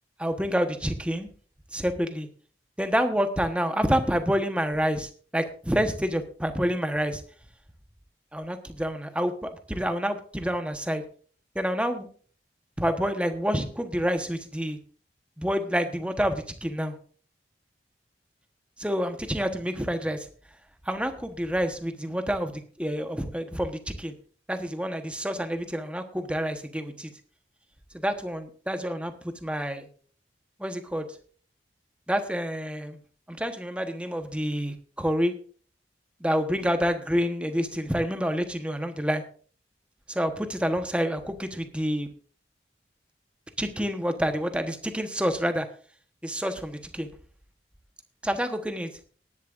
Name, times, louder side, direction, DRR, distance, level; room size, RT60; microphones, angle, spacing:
voice 1, 0.2-1.3 1.7-2.3 2.8-7.2 8.3-11.0 11.5-12.1 12.8-14.8 15.4-16.9 18.8-20.3 20.8-24.1 24.5-27.1 27.9-29.9 30.6-31.1 32.1-33.0 33.3-35.3 36.2-39.2 40.1-42.1 43.6-45.7 46.2-47.1 48.2-48.9, equal, 5° right, 7 dB, 1.1 m, -28 dB
18.5 x 11.0 x 2.5 m, 0.43 s
head